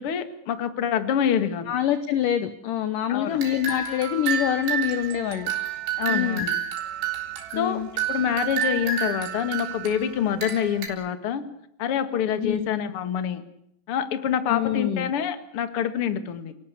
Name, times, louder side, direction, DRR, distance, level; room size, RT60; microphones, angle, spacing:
voice 1, 0.0-1.7 3.1-3.4 6.0-6.6 7.6-7.8 8.1-11.4 11.8-13.4 13.9-16.5, left 8 dB, 50° left, 9 dB, 1.7 m, -26 dB
voice 2, 1.7-5.5 6.1-6.5 7.5-7.9 12.4-12.7 14.5-15.1, left 10 dB, 75° left, 11 dB, 1.9 m, -26 dB
sound 1, 3.3-10.9, right 7 dB, 75° right, 6.1 m, -30 dB
30.0 x 18.5 x 8.4 m, 0.73 s
omnidirectional pair, 5.3 m